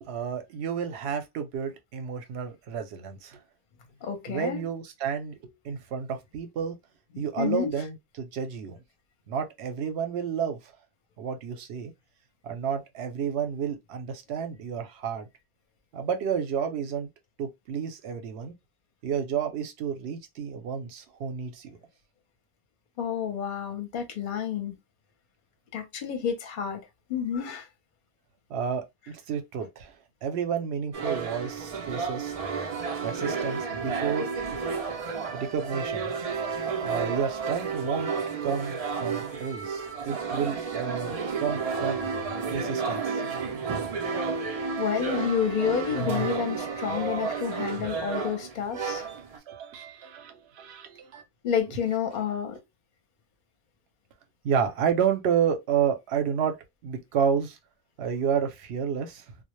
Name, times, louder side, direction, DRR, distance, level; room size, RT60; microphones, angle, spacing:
voice 1, 0.0-3.4 4.3-6.8 7.2-8.8 9.3-10.6 11.2-11.9 12.4-15.3 15.9-17.1 17.4-18.5 19.0-21.8 28.5-29.9 30.2-32.3 33.0-34.3 35.3-36.1 36.8-38.1 38.4-42.0 42.5-43.2 47.3-47.4 48.9-51.2 54.4-56.5 56.8-57.6 58.0-59.2, right 7 dB, 75° right, 0.9 m, -30 dB
voice 2, 4.0-4.6 7.1-7.7 23.0-24.7 25.7-26.8 27.1-27.6 44.8-49.0 51.4-52.6, left 7 dB, 55° left, 0.7 m, -29 dB
sound 1, 30.9-49.4, right 5 dB, 50° right, 0.4 m, -31 dB
2.1 x 2.0 x 2.9 m
omnidirectional pair, 1.1 m